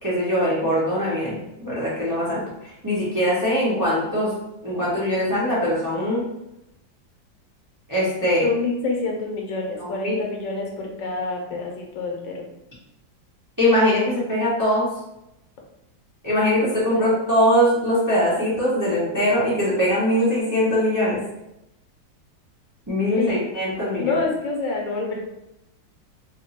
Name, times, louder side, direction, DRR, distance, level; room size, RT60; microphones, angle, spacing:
voice 1, 0.0-4.3 4.6-6.2 7.9-8.4 9.8-10.2 13.6-14.9 16.2-21.2 22.9-24.2, equal, 15° right, -8 dB, 0.7 m, -22 dB
voice 2, 8.4-12.4 16.7-17.2 23.1-23.5 24.0-25.2, left 3 dB, 80° left, 0 dB, 1.5 m, -27 dB
3.4 x 2.2 x 4.2 m, 0.89 s
omnidirectional pair, 2.0 m